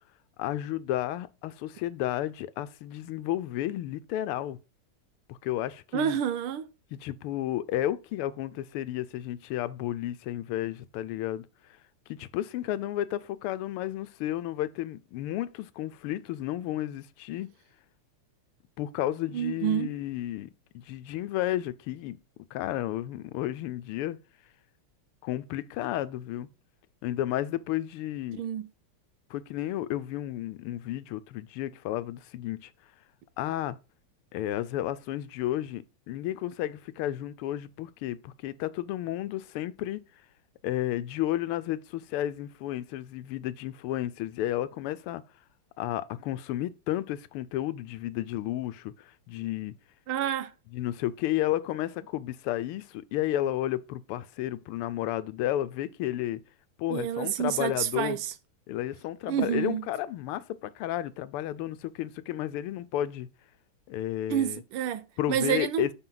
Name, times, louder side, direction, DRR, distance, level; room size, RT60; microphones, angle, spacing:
voice 1, 0.4-4.6 5.3-6.2 6.9-11.5 12.1-17.5 18.8-20.5 20.7-22.2 22.5-24.2 25.2-26.5 27.0-28.4 29.3-32.7 33.4-33.8 34.3-40.0 40.6-45.2 45.8-49.7 50.7-56.4 56.8-58.2 58.7-63.3 63.9-64.6 65.2-65.9, left 13 dB, 90° left, 1.5 m, -32 dB
voice 2, 5.9-6.7 19.3-19.9 28.4-28.7 50.1-50.5 56.9-58.3 59.3-59.8 64.3-65.9, right 10 dB, 80° right, 1.6 m, -29 dB
9.8 x 4.5 x 3.9 m
omnidirectional pair, 2.4 m